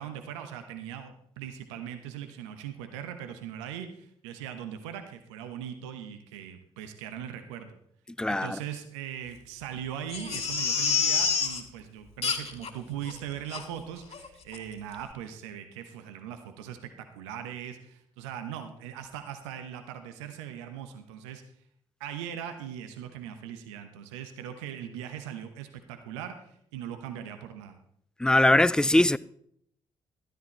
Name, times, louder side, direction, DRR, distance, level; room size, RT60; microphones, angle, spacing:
voice 1, 0.0-7.8 8.3-21.4 22.0-27.8, right 9 dB, 80° right, 1.0 m, -40 dB
voice 2, 8.2-8.6 28.2-29.2, left 1 dB, 5° left, 0.4 m, -21 dB
Crying sobbing, 10.1-11.6 12.2-12.7 13.1-13.2 13.5-13.6 14.1-14.3 14.5-14.6, left 5 dB, 45° left, 2.4 m, -27 dB
13.0 x 10.5 x 4.2 m
figure-of-eight pair, 40°, 15 cm